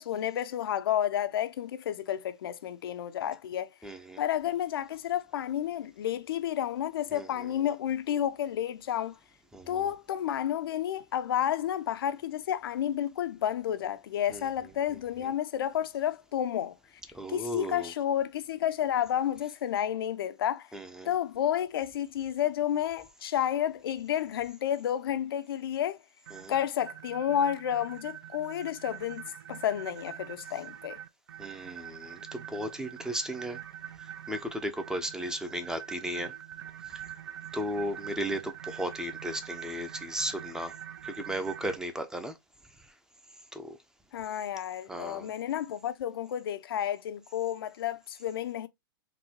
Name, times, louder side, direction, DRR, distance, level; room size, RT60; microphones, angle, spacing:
voice 1, 0.0-3.7 4.2-9.2 9.7-16.8 17.3-20.7 21.1-26.0 26.5-29.2 29.5-31.0 44.1-48.7, left 10 dB, 80° left, 0.4 m, -31 dB
voice 2, 3.8-4.2 7.1-7.7 9.5-9.9 14.3-14.5 14.9-15.3 17.1-17.9 20.7-21.1 26.3-26.5 31.4-33.6 33.9-36.3 36.8-37.1 37.5-40.8 41.0-42.4 42.8-42.9 43.5-43.8 44.9-45.3, equal, 5° right, 0.5 m, -36 dB
sound 1, 26.3-41.8, right 10 dB, 75° right, 0.4 m, -44 dB
3.9 x 2.2 x 2.7 m
hypercardioid pair, 120°, 12 cm